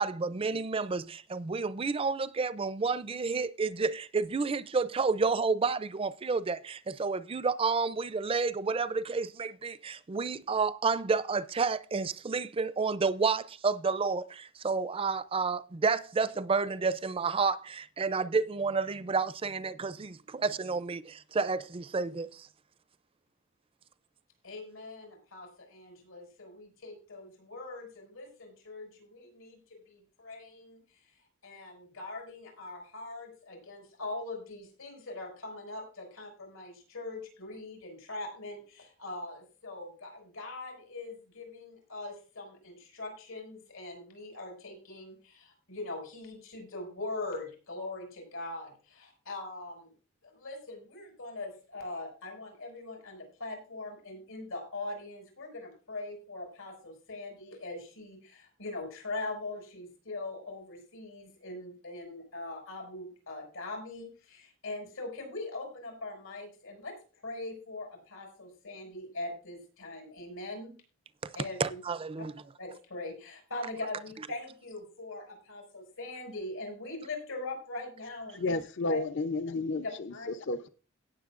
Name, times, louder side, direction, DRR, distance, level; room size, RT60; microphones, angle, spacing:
voice 1, 0.0-22.5 71.6-72.3, right 4 dB, 25° right, 0.4 m, -30 dB
voice 2, 24.4-30.8 31.4-49.9 50.2-66.9 67.2-70.7 71.3-71.8 72.6-78.6 78.9-79.0 80.1-80.3, left 2 dB, 90° left, 5.8 m, -41 dB
voice 3, 78.3-80.1 80.5-80.7, left 3 dB, 60° left, 0.6 m, -31 dB
17.5 x 7.2 x 2.5 m
head